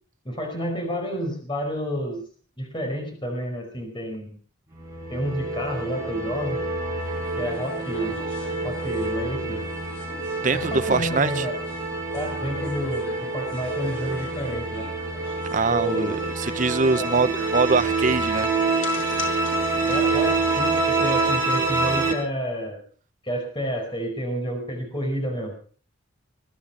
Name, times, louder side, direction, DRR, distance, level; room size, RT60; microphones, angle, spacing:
voice 1, 0.2-2.2 2.6-4.3 5.1-6.6 7.4-8.2 8.6-9.6 10.5-11.6 12.1-14.9 15.7-16.2 16.9-17.3 19.9-22.8 23.2-25.5, equal, 25° left, 4.7 m, -30 dB
sound 1, 4.7-22.1, right 3 dB, 15° right, 5.7 m, -27 dB
sound 2, 7.0-21.0, left 2 dB, 70° left, 4.3 m, -44 dB
voice 2, 10.4-11.4 15.5-18.5, right 4 dB, 40° right, 0.6 m, -23 dB
21.5 x 10.0 x 5.8 m
head